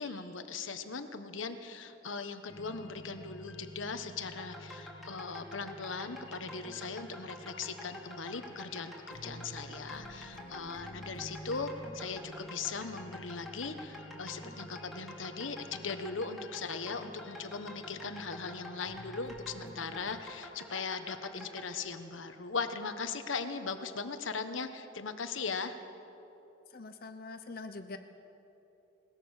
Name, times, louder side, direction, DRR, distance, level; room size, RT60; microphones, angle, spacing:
voice 1, 0.0-25.7, left 4 dB, 90° left, 9 dB, 1.3 m, -39 dB
sound 1, 2.5-20.2, left 1 dB, 75° left, 1.6 m, -51 dB
sound 2, 4.4-21.7, left 1 dB, ahead, 3.1 m, -48 dB
voice 2, 26.7-28.0, left 3 dB, 50° left, 8 dB, 0.9 m, -44 dB
21.5 x 19.0 x 6.6 m, 2.9 s
head